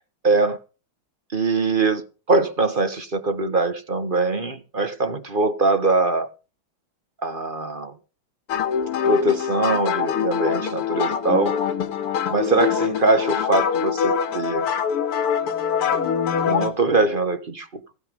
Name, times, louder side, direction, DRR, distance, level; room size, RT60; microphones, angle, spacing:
voice 1, 0.2-0.6 1.3-2.0 2.3-6.3 7.2-7.9 9.0-11.6 12.3-14.6 16.5-17.7, right 3 dB, 35° right, 1.0 m, -22 dB
sound 1, 8.5-16.7, left 7 dB, 80° left, 2.5 m, -24 dB
15.5 x 10.5 x 5.3 m
omnidirectional pair, 2.4 m